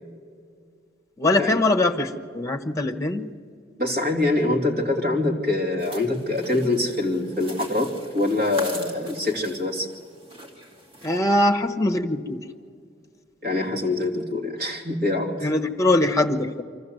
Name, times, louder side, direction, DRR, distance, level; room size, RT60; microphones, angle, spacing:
voice 1, 1.2-3.3 11.0-12.4 15.4-16.6, left 1 dB, 20° left, 4 dB, 1.2 m, -22 dB
voice 2, 3.8-9.9 13.4-15.5, left 2 dB, 50° right, 1 dB, 2.8 m, -24 dB
sound 1, 5.8-11.2, right 1 dB, 30° right, 2.4 m, -42 dB
25.0 x 14.0 x 7.9 m, 2.2 s
head